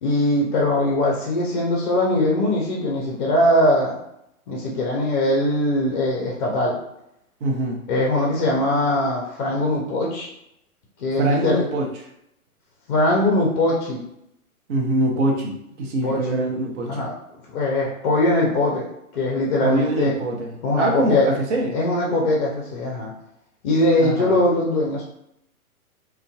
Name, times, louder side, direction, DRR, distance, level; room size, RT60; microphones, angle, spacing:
voice 1, 0.0-4.0 4.5-6.8 7.9-10.3 11.0-11.6 12.9-14.0 16.0-16.2 16.9-17.1 17.5-18.9 19.1-20.1 20.6-21.3 21.7-23.1 23.6-25.0, left 1 dB, 35° left, -3 dB, 0.5 m, -21 dB
voice 2, 7.4-7.8 11.2-11.9 14.7-17.1 19.6-21.8 24.0-24.4, right 1 dB, 50° right, 0 dB, 0.7 m, -23 dB
2.5 x 2.2 x 2.3 m, 0.78 s
figure-of-eight pair, 120°, 44 cm